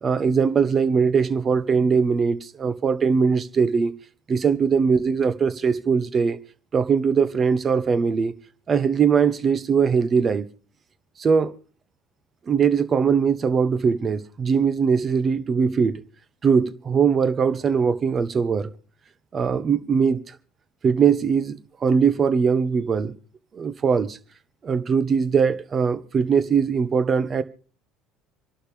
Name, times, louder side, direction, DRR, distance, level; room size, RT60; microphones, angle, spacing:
voice 1, 0.0-3.9 4.3-6.4 6.7-8.3 8.7-10.5 11.2-11.5 12.5-16.0 16.4-18.7 19.3-20.2 20.8-23.1 23.5-24.2 24.6-27.4, right 6 dB, 40° right, 1.2 m, -21 dB
27.5 x 11.5 x 3.5 m
hypercardioid pair, 65°, 0 cm